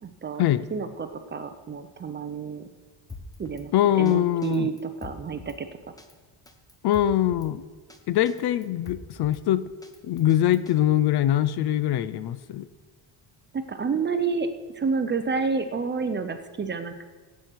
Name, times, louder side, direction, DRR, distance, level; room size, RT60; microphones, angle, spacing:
voice 1, 0.0-0.4 0.7-2.7 3.4-5.7 13.5-14.5 14.7-16.9, right 5 dB, 25° right, 8 dB, 0.5 m, -29 dB
Drum kit, 3.1-3.7 4.1-4.2 4.4-5.6 6.0-6.1 6.5-7.5 7.9-8.0 8.3-9.4 9.8-10.7, left 2 dB, 10° left, 0.8 m, -44 dB
voice 2, 3.7-4.7 6.8-7.6 8.1-9.7 10.0-12.7, left 12 dB, 55° left, 15 dB, 0.5 m, -23 dB
17.0 x 7.6 x 4.5 m, 1.4 s
cardioid pair, 150°, 50 cm